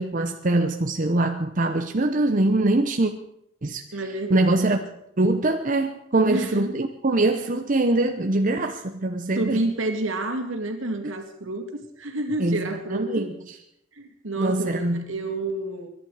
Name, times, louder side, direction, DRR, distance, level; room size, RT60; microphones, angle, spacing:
voice 1, 0.0-3.1 3.6-3.8 4.3-4.8 5.2-9.7 12.4-13.6 14.4-15.1, right 2 dB, 40° right, 5 dB, 0.8 m, -23 dB
voice 2, 3.9-4.6 6.3-6.7 9.4-13.3 13.9-15.9, right 2 dB, 75° right, 4 dB, 2.4 m, -29 dB
24.0 x 11.5 x 4.9 m, 0.77 s
head